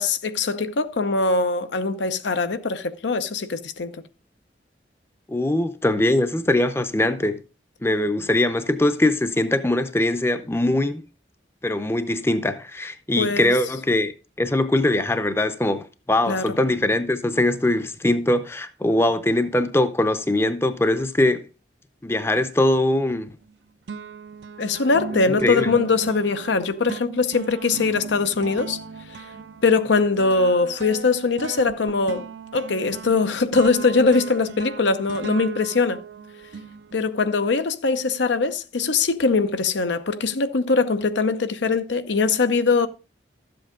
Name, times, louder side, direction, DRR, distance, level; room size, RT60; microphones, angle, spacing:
voice 1, 0.0-3.9 13.2-13.5 16.3-16.5 24.6-28.8 29.6-32.3 32.5-36.0 36.9-42.9, left 4 dB, 85° left, 0.7 m, -22 dB
voice 2, 5.3-7.4 7.8-11.0 11.6-14.1 14.4-21.5 22.0-23.3 25.3-25.7, left 1 dB, 15° left, 0.6 m, -22 dB
sound 1, 23.1-23.5 23.9-37.3, right 5 dB, 80° right, 0.5 m, -37 dB
12.0 x 7.8 x 3.7 m
head